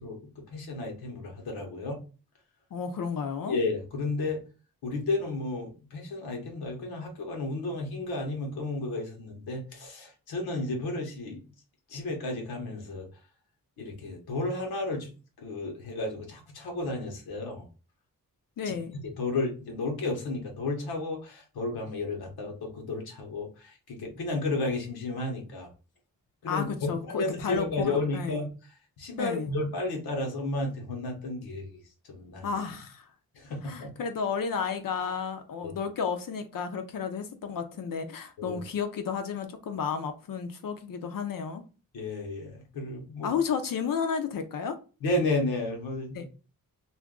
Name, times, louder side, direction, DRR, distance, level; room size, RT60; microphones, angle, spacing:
voice 1, 0.0-2.0 3.5-4.4 4.8-11.4 11.9-13.1 13.8-15.1 15.4-17.7 18.7-18.8 19.2-25.7 26.4-28.5 29.0-31.8 32.1-32.5 33.3-33.9 35.6-35.7 38.4-38.6 41.9-43.3 45.0-46.3, left 2 dB, 85° left, 1.0 m, -32 dB
voice 2, 2.7-3.6 18.6-19.0 26.5-28.4 29.2-29.5 32.4-33.1 33.6-41.6 43.2-44.8 46.1-46.3, left 6 dB, 65° left, 0.6 m, -32 dB
2.5 x 2.2 x 3.6 m
cardioid pair, 55°, 36 cm